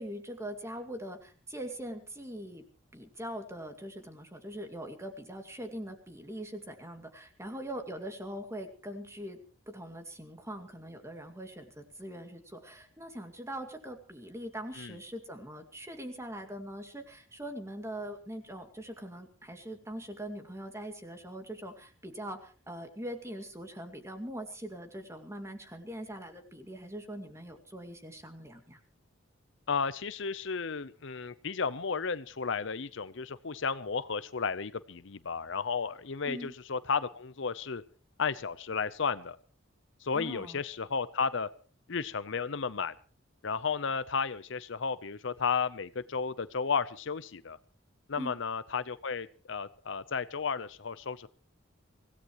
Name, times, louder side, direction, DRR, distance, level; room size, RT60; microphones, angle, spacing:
voice 1, 0.0-2.6 2.9-9.4 9.7-28.8 36.2-36.5 40.1-40.6 48.2-48.3, equal, 15° right, 6 dB, 2.3 m, -42 dB
voice 2, 29.7-37.8 38.2-39.4 40.0-41.5 41.9-42.9 43.4-47.6 48.1-51.3, left 5 dB, 65° left, 15 dB, 0.7 m, -33 dB
25.0 x 17.0 x 3.1 m, 0.38 s
head